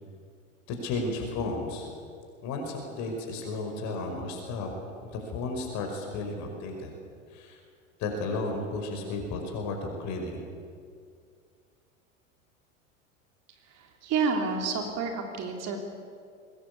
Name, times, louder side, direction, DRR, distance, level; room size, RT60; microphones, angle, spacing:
voice 1, 0.7-1.9 2.4-4.7 5.0-6.9 7.3-7.6 8.0-10.5, left 3 dB, 45° left, 3 dB, 5.4 m, -33 dB
voice 2, 13.8-15.8, right 5 dB, 40° right, 3 dB, 3.4 m, -29 dB
23.0 x 20.0 x 8.5 m, 2.3 s
figure-of-eight pair, 85°, 39 cm